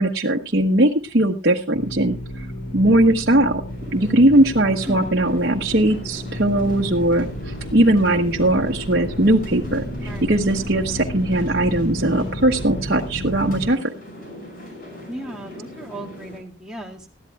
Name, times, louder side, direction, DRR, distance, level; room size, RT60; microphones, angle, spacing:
voice 1, 0.0-2.4 2.7-3.6 3.9-9.8 10.3-13.9, right 1 dB, 55° right, 0 dB, 1.0 m, -19 dB
sound 1, 1.7-13.7, left 1 dB, 85° left, 2.7 m, -32 dB
sound 2, 3.7-16.4, left 1 dB, 45° left, 6.1 m, -40 dB
voice 2, 10.0-10.4 15.1-17.1, right 1 dB, 5° right, -1 dB, 1.8 m, -36 dB
20.0 x 13.5 x 2.3 m, 0.26 s
head